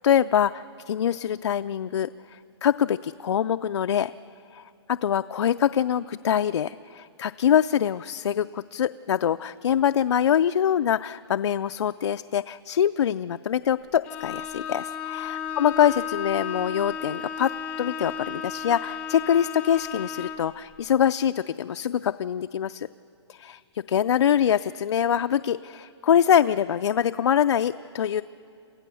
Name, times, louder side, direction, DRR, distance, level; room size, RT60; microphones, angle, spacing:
voice 1, 0.0-4.1 4.5-22.9 23.3-28.2, left 9 dB, 75° left, 10 dB, 0.4 m, -24 dB
Bowed string instrument, 14.0-20.5, left 7 dB, 10° left, 0.5 m, -34 dB
28.0 x 15.0 x 6.9 m, 2.4 s
hypercardioid pair, 180°, 15 cm